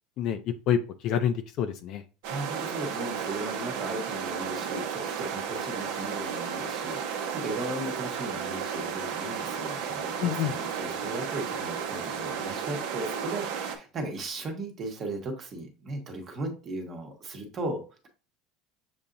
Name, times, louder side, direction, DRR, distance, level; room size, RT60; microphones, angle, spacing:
voice 1, 0.2-2.0 10.2-10.5, left 9 dB, 45° left, 8 dB, 0.4 m, -28 dB
sound 1, 2.2-13.8, right 7 dB, 70° right, 0.8 m, -33 dB
voice 2, 2.3-18.1, right 2 dB, 30° right, 3 dB, 1.0 m, -37 dB
6.9 x 2.8 x 2.6 m, 0.34 s
cardioid pair, 160°, 0 cm